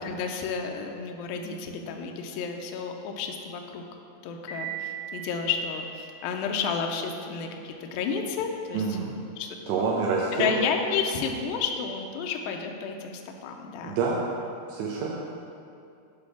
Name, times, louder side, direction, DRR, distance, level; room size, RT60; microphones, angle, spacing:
voice 1, 0.0-3.8 4.2-9.0 9.4-9.8 10.3-14.0, left 5 dB, 80° left, 3 dB, 2.1 m, -31 dB
Piano, 4.5-6.4, right 9 dB, 40° left, 2.3 m, -39 dB
voice 2, 8.7-9.1 9.7-10.5 13.8-14.2 14.7-15.1, right 5 dB, 85° right, -3 dB, 2.8 m, -27 dB
10.5 x 3.6 x 5.9 m, 2.5 s
omnidirectional pair, 4.7 m